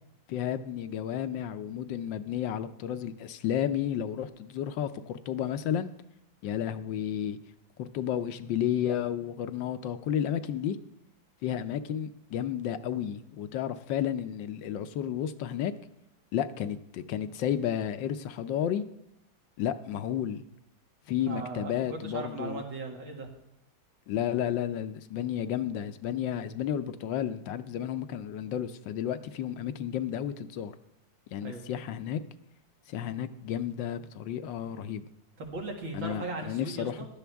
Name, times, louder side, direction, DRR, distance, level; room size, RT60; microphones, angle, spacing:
voice 1, 0.3-5.9 6.4-7.4 7.8-10.8 11.4-15.7 16.3-18.8 19.6-20.4 21.1-22.6 24.1-30.7 31.3-32.2 32.9-35.1 35.9-37.0, left 10 dB, 75° left, 11 dB, 1.4 m, -32 dB
voice 2, 21.3-23.3 31.4-31.7 35.4-37.1, right 3 dB, 85° right, 1 dB, 2.7 m, -38 dB
15.5 x 11.5 x 3.4 m, 0.80 s
omnidirectional pair, 2.1 m